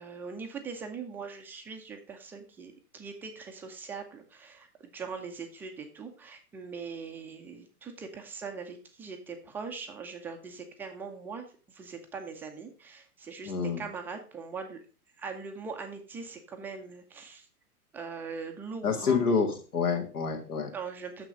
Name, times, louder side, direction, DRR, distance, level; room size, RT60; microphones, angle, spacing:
voice 1, 0.0-14.8 15.2-17.5 17.9-19.2 20.7-21.3, right 5 dB, 5° right, 3 dB, 0.4 m, -41 dB
voice 2, 13.5-13.8 18.8-20.7, left 5 dB, 70° left, 4 dB, 1.9 m, -28 dB
6.7 x 5.9 x 5.1 m, 0.37 s
figure-of-eight pair, 110°, 46 cm